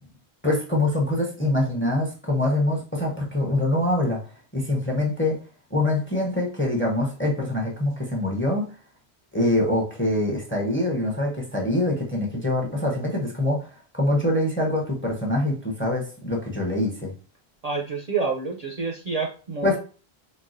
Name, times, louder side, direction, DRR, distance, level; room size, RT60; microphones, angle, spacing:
voice 1, 0.4-4.2 4.5-5.4 5.7-8.7 9.3-13.7 13.9-17.1 19.6-19.8, left 1 dB, 15° left, 0.6 m, -24 dB
voice 2, 17.6-19.8, right 4 dB, 50° right, 0.5 m, -28 dB
4.0 x 2.2 x 2.5 m
omnidirectional pair, 1.1 m